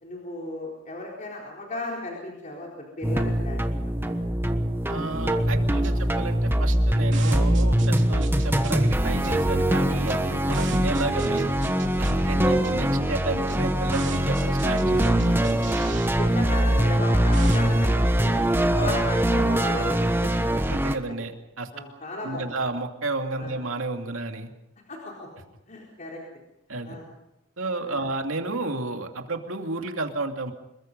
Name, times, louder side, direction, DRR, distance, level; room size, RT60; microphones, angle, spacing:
voice 1, 0.0-4.2 4.9-5.0 5.4-6.2 12.5-12.6 15.6-15.7 16.1-18.4 18.8-20.4 21.7-22.5 23.4-23.5 24.9-25.3 25.7-26.2 26.8-27.0 27.9-28.0, left 1 dB, 40° left, -2 dB, 4.3 m, -35 dB
sound 1, 3.0-21.0, right 1 dB, 10° right, 1.2 m, -23 dB
voice 2, 4.9-11.5 12.0-15.4 18.8-19.0 20.7-21.7 22.2-24.5 26.7-27.0 27.6-30.5, right 2 dB, 80° right, 4 dB, 2.6 m, -32 dB
sound 2, 5.4-19.0, right 1 dB, 60° right, 3.4 m, -38 dB
27.5 x 22.5 x 5.5 m, 0.88 s
head